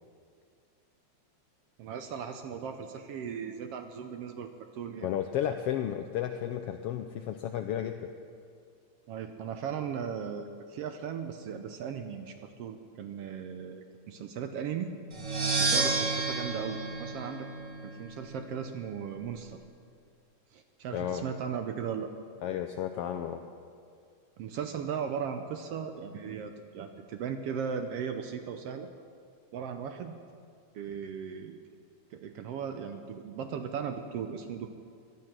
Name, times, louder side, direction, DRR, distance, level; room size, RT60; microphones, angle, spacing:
voice 1, 1.8-5.1 9.1-14.9 15.6-17.5 17.8-19.6 20.5-22.1 24.4-28.9 29.5-30.1 30.7-31.6 32.1-34.7, right 7 dB, 70° right, 7 dB, 1.5 m, -37 dB
voice 2, 5.0-8.1 20.9-21.2 22.4-23.4, left 10 dB, 85° left, 7 dB, 1.3 m, -33 dB
sound 1, 15.1-18.0, right 3 dB, 50° right, 0.9 m, -30 dB
18.0 x 12.0 x 6.0 m, 2.2 s
omnidirectional pair, 3.3 m